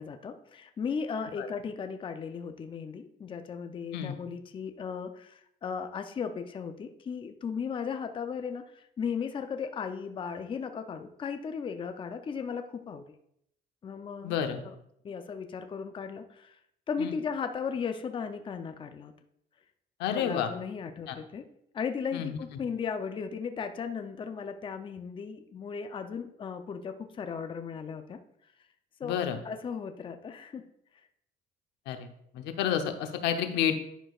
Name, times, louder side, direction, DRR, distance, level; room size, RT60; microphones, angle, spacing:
voice 1, 0.0-13.0 13.8-14.8 15.0-16.6 16.9-19.1 20.1-21.5 21.7-28.2 29.0-29.2 29.4-30.6, left 6 dB, 30° left, 7 dB, 0.5 m, -36 dB
voice 2, 14.2-14.6 17.0-17.1 20.0-20.5 21.1-21.2 22.1-22.4 29.0-29.4 31.9-32.1 32.3-33.8, left 9 dB, 90° left, 7 dB, 0.8 m, -30 dB
10.0 x 6.1 x 2.4 m, 0.73 s
cardioid pair, 110°, 17 cm